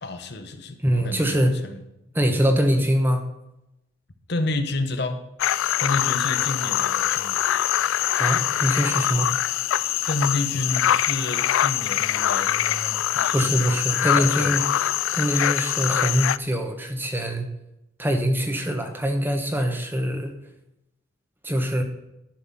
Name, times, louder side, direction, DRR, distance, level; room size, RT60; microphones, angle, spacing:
voice 1, 0.0-1.8 4.3-5.2 5.8-7.4 10.1-13.7 14.0-14.6, left 2 dB, 60° left, 7 dB, 1.0 m, -30 dB
voice 2, 0.8-1.6 2.1-3.2 8.2-9.3 13.3-14.6 15.1-17.5 18.0-20.3 21.4-21.8, equal, 10° right, 5 dB, 1.1 m, -23 dB
sound 1, 5.4-16.4, left 11 dB, 85° left, 0.3 m, -23 dB
11.5 x 5.8 x 5.7 m, 0.87 s
head